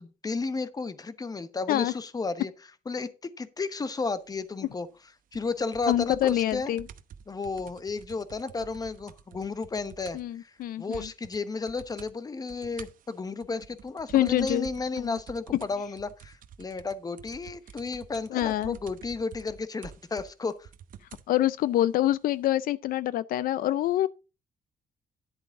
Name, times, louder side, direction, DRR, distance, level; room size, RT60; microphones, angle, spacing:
voice 1, 0.2-2.5 2.9-4.9 5.3-6.7 7.3-10.5 10.8-20.7, left 4 dB, 25° left, 1.0 m, -33 dB
sound 1, 5.3-10.4 10.6-10.7 10.9-11.4 11.7-12.1 12.5-21.3 22.1-22.2, right 8 dB, 70° right, 0.9 m, -49 dB
voice 2, 5.9-6.8 10.1-11.1 14.1-14.7 14.9-15.2 18.3-18.8 21.3-24.1, left 13 dB, 80° left, 0.4 m, -26 dB
11.0 x 7.9 x 3.8 m
cardioid pair, 110°, 14 cm